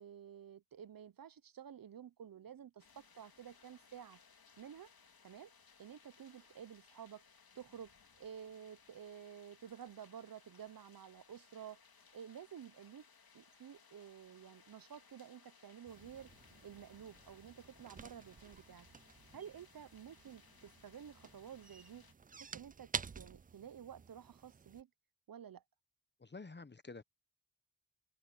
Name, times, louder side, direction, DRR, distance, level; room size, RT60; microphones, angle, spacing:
voice 1, 0.0-4.2 4.6-4.9 5.2-5.5 5.8-7.2 7.5-7.9 8.2-11.8 12.1-13.0 13.3-16.3 16.6-18.9 19.3-24.9 25.3-25.6, right 8 dB, 60° right, 0.7 m, -52 dB
sound 1, 2.8-22.1, left 5 dB, 65° left, 2.5 m, -65 dB
sound 2, 15.9-24.8, right 5 dB, 25° right, 0.3 m, -50 dB
voice 2, 26.2-27.0, left 3 dB, 25° left, 0.9 m, -50 dB
open air
wide cardioid pair, 70°, 40 cm